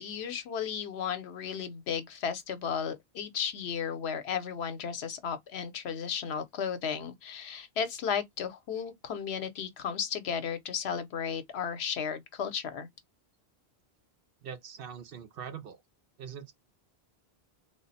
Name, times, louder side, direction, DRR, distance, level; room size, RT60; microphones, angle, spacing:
voice 1, 0.0-12.9, left 7 dB, 80° left, 1.0 m, -34 dB
voice 2, 14.4-15.8 16.2-16.5, right 7 dB, 65° right, 0.8 m, -42 dB
3.5 x 2.0 x 4.0 m
omnidirectional pair, 1.1 m